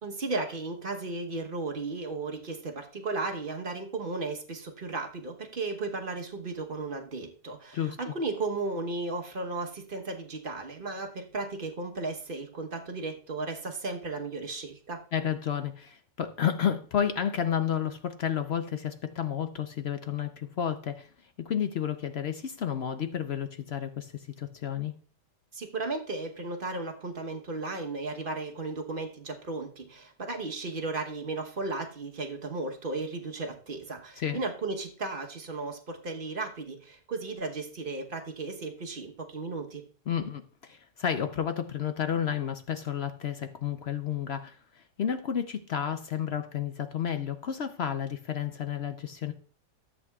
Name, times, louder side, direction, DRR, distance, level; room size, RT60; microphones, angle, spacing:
voice 1, 0.0-15.0 25.5-39.8, right 3 dB, 35° right, 4 dB, 1.1 m, -35 dB
voice 2, 7.7-8.1 15.1-21.1 21.4-24.9 34.2-34.4 40.1-49.3, left 8 dB, 65° left, 9 dB, 0.6 m, -31 dB
13.5 x 8.2 x 2.3 m, 0.42 s
omnidirectional pair, 1.7 m